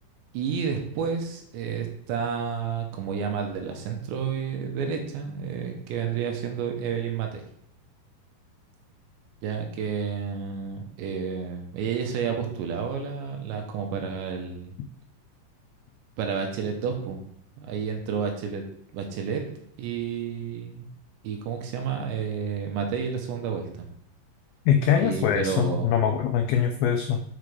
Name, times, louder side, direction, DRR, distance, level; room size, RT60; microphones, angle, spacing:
voice 1, 0.3-7.4 9.4-14.8 16.2-17.3 17.6-18.6 18.9-19.4 19.8-20.9 21.2-23.9 25.0-26.0, right 6 dB, 80° right, 3 dB, 3.4 m, -30 dB
voice 2, 24.7-27.2, left 8 dB, 90° left, 4 dB, 2.1 m, -23 dB
8.3 x 7.3 x 3.5 m, 0.69 s
omnidirectional pair, 5.2 m